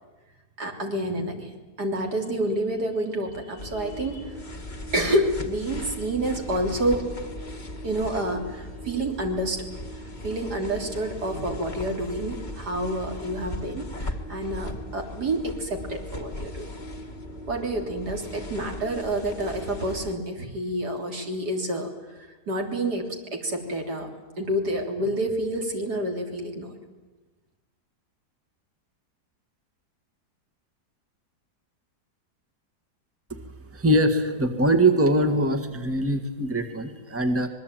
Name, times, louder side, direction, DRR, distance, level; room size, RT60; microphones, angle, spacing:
voice 1, 0.6-1.5 1.8-4.4 4.9-7.0 7.8-9.6 10.2-16.7 17.5-21.9 22.2-24.1 24.4-26.7, right 1 dB, 75° right, 2 dB, 4.0 m, -28 dB
sound 1, 3.6-20.2, left 1 dB, 30° left, 1.7 m, -38 dB
voice 2, 33.7-37.5, right 1 dB, 10° right, 6 dB, 1.8 m, -22 dB
25.5 x 21.5 x 9.2 m, 1.2 s
omnidirectional pair, 1.8 m